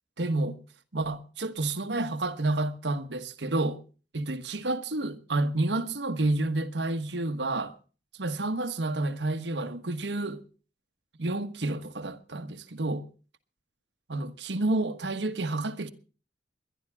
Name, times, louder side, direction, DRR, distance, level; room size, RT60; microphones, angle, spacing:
voice 1, 0.2-0.6 0.9-3.8 4.1-7.7 8.2-10.4 11.2-13.1 14.1-15.9, right 2 dB, 85° right, 1.3 m, -30 dB
22.0 x 11.5 x 3.5 m
head